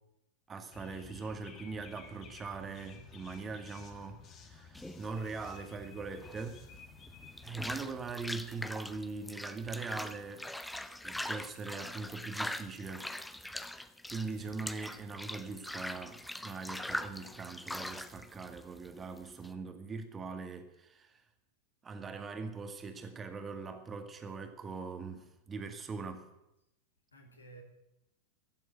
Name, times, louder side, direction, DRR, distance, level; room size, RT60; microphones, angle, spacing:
voice 1, 0.5-6.6 7.4-10.5 11.0-13.1 14.1-21.2 21.8-26.3, right 4 dB, 20° right, 1.9 m, -41 dB
sound 1, 0.7-7.7, left 5 dB, 30° left, 1.7 m, -53 dB
sound 2, 4.7-19.5, left 1 dB, 5° left, 0.7 m, -42 dB
voice 2, 14.3-14.6 27.1-27.6, right 3 dB, 75° left, 2.9 m, -55 dB
15.5 x 7.5 x 9.0 m
figure-of-eight pair, 90°, 0 cm